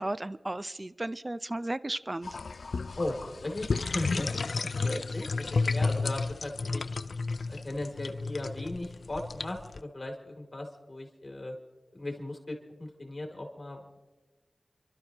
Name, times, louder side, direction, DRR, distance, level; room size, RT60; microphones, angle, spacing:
voice 1, 0.0-2.4, right 1 dB, 35° right, 15 dB, 0.5 m, -34 dB
sound 1, 2.2-9.8, left 4 dB, 85° left, 0.3 m, -32 dB
voice 2, 3.0-6.8 7.5-11.5 11.9-13.8, left 1 dB, 45° left, 2 dB, 2.8 m, -37 dB
28.0 x 12.5 x 2.9 m, 1.1 s
wide cardioid pair, 55°, 0 cm